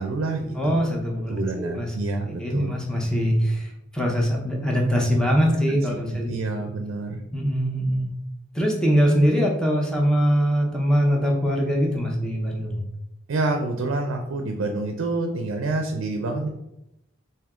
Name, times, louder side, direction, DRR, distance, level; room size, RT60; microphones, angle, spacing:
voice 1, 0.0-0.8 1.3-2.8 5.7-5.8 6.1-7.2 13.3-16.5, right 2 dB, 80° right, 4 dB, 0.4 m, -27 dB
voice 2, 0.6-1.9 2.4-3.7 3.9-6.3 7.3-8.1 8.5-12.8, equal, 5° left, -2 dB, 0.6 m, -22 dB
3.5 x 2.7 x 3.5 m, 0.85 s
head